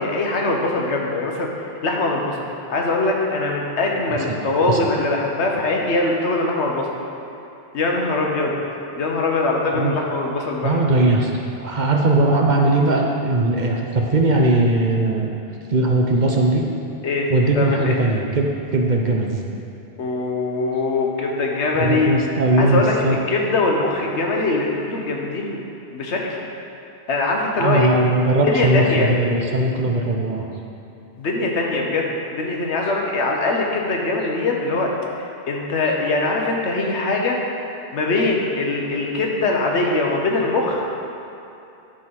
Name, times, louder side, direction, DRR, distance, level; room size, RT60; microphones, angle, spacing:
voice 1, 0.0-1.5 1.8-6.9 7.7-8.6 9.0-10.8 17.0-17.3 17.5-18.0 20.0-22.1 22.6-23.0 23.3-25.6 25.9-26.4 27.1-27.9 28.4-29.1 31.2-34.9 35.5-37.4 37.9-40.9, left 2 dB, 85° left, 0 dB, 1.3 m, -22 dB
voice 2, 4.1-4.4 4.7-4.8 9.7-9.9 10.6-15.3 15.7-16.6 17.3-19.4 21.8-23.2 27.6-30.5, right 2 dB, 50° right, 0 dB, 0.8 m, -19 dB
10.0 x 3.9 x 6.0 m, 2.8 s
omnidirectional pair, 1.1 m